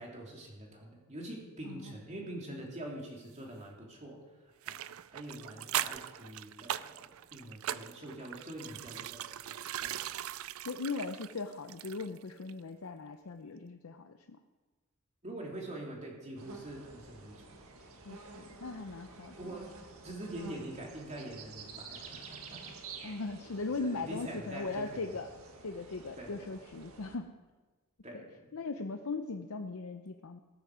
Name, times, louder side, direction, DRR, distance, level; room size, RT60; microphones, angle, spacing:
voice 1, 0.0-4.2 4.6-10.2 15.2-17.5 19.2-19.7 20.0-22.6 23.8-25.1 26.2-26.5 28.0-28.6, right 1 dB, 35° right, -1 dB, 3.2 m, -45 dB
sound 1, 4.6-12.2 12.5-12.6, right 12 dB, 75° right, 0.4 m, -40 dB
voice 2, 10.6-14.4 18.0-19.6 23.0-25.3 25.6-27.3 28.1-28.2 28.5-30.4, left 3 dB, 80° left, 6 dB, 0.7 m, -39 dB
sound 2, 16.4-27.2, right 4 dB, 90° right, 1.8 m, -50 dB
16.0 x 13.5 x 4.9 m, 1.3 s
head